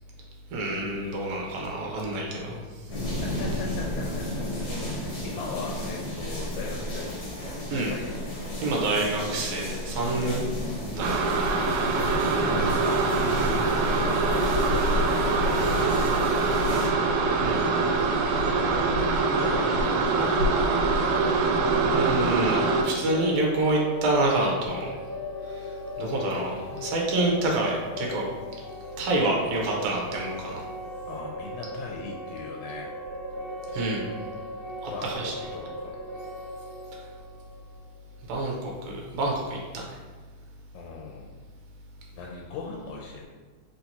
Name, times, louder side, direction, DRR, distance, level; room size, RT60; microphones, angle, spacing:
voice 1, 0.5-2.9 7.7-7.9 8.6-10.5 10.9-11.2 17.3-17.9 21.9-25.0 25.4-28.3 29.0-30.6 33.7-34.2 34.8-35.3 36.9-37.0 38.3-40.0, right 2 dB, 75° right, -1 dB, 2.0 m, -28 dB
sound 1, 2.9-16.9, equal, 55° left, 1.4 m, -33 dB
voice 2, 3.2-7.1 7.7-8.2 11.8-13.1 13.5-16.9 18.2-20.8 31.1-32.9 34.9-35.9 40.7-41.4 42.1-43.2, left 4 dB, 90° left, -1 dB, 2.0 m, -39 dB
sound 2, 11.0-22.8, right 3 dB, 90° right, 2.0 m, -24 dB
sound 3, 20.6-38.4, left 1 dB, 30° right, 0.5 m, -38 dB
4.6 x 4.0 x 2.8 m, 1.5 s
omnidirectional pair, 3.3 m